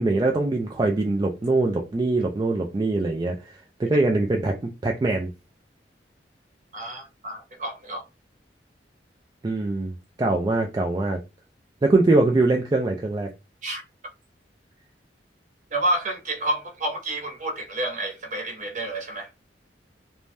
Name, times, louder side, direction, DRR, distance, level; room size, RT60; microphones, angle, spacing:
voice 1, 0.0-3.5 3.8-4.5 4.8-5.3 9.4-9.9 10.2-11.2 11.8-13.3, right 2 dB, 25° right, 0.3 m, -22 dB
voice 2, 6.7-8.0 13.6-13.8 15.7-19.3, right 1 dB, 45° right, 0.8 m, -29 dB
2.6 x 2.1 x 3.2 m
head